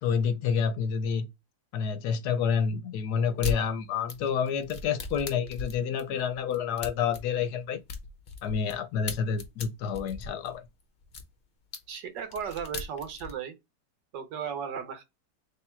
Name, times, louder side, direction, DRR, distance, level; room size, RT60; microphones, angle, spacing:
voice 1, 0.0-1.3 1.7-7.8 8.4-10.6, left 7 dB, 75° left, 1.1 m, -29 dB
sound 1, 3.4-3.6 4.1-8.8 9.0-11.2 11.7-11.8 12.2-13.3, left 5 dB, 45° left, 0.7 m, -37 dB
voice 2, 11.9-13.5 14.1-15.0, right 7 dB, 80° right, 1.6 m, -35 dB
3.5 x 2.7 x 4.3 m
omnidirectional pair, 1.9 m